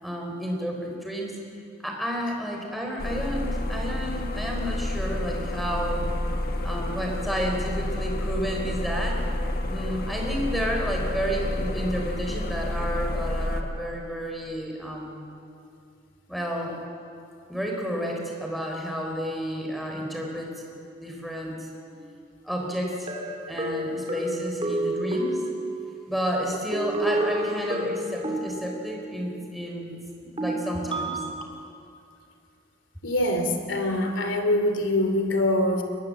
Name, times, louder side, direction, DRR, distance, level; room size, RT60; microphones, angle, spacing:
voice 1, 0.0-1.3 1.8-6.1 6.6-9.2 9.7-15.2 16.3-16.8 17.5-20.5 21.0-21.7 22.4-23.1 23.5-25.4 26.1-29.9 30.2-31.2, equal, ahead, -1 dB, 4.2 m, -31 dB
sound 1, 3.0-13.6, left 1 dB, 55° left, 1.5 m, -29 dB
sound 2, 21.9-22.0 23.1-26.2 26.7-29.3 30.4-31.4, right 1 dB, 30° right, 2.5 m, -30 dB
voice 2, 33.0-35.8, left 1 dB, 85° left, 6 dB, 2.6 m, -24 dB
22.0 x 20.5 x 7.6 m, 2.5 s
head